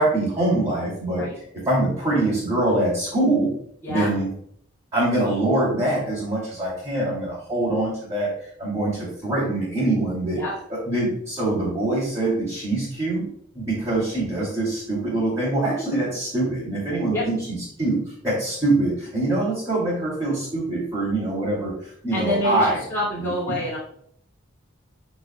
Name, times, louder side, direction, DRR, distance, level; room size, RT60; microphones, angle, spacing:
voice 1, 0.0-1.2 1.5-3.5 3.9-4.3 4.9-8.3 8.6-10.4 10.7-13.3 13.5-22.8 23.2-23.6, right 2 dB, 15° right, -9 dB, 2.8 m, -24 dB
voice 2, 22.1-23.8, left 1 dB, 10° left, -10 dB, 2.4 m, -26 dB
12.0 x 4.1 x 2.3 m, 0.65 s
head